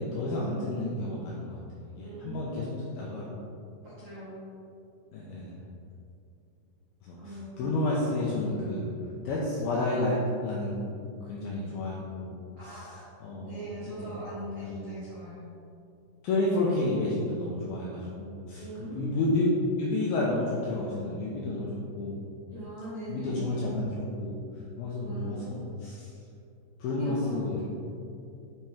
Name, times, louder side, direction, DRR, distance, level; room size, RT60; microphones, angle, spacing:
voice 1, 0.0-1.6 1.9-3.3 5.1-5.5 7.0-8.9 9.3-10.9 11.2-12.3 12.6-12.9 13.2-13.6 13.9-14.2 14.6-14.8 16.2-19.4 19.8-22.2 23.1-24.3 24.8-26.1 26.8-27.6, left 2 dB, 85° left, -5 dB, 2.2 m, -31 dB
voice 2, 2.0-3.3 3.8-4.4 7.2-7.7 12.6-13.0 13.4-15.5 18.6-19.4 22.5-23.6 25.0-25.6 27.0-27.7, equal, 70° right, -11 dB, 1.2 m, -41 dB
10.0 x 4.5 x 3.6 m, 2.6 s
omnidirectional pair, 5.3 m